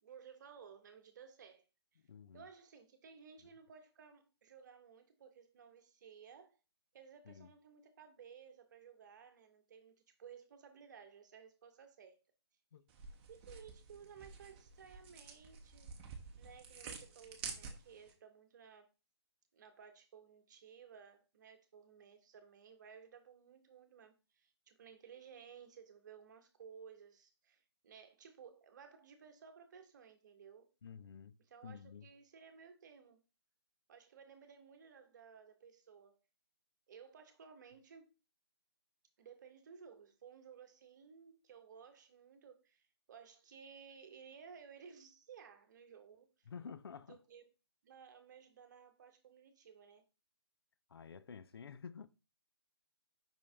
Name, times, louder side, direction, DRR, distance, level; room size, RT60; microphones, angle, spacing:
voice 1, 0.0-1.6 1.9-2.0 2.3-6.6 6.9-12.2 13.3-15.9 16.3-18.9 19.5-30.7 31.5-33.2 33.9-36.2 36.9-38.1 39.2-46.3 47.1-47.4 47.8-50.0, right 7 dB, 45° right, 1.2 m, -57 dB
voice 2, 2.1-2.5 7.2-7.5 12.7-12.9 30.8-31.4 31.6-32.1 46.5-47.2 50.9-52.1, left 6 dB, 60° left, 0.5 m, -51 dB
sound 1, 12.9-18.1, right 5 dB, 25° right, 1.0 m, -50 dB
5.5 x 5.3 x 3.4 m
figure-of-eight pair, 150°, 14 cm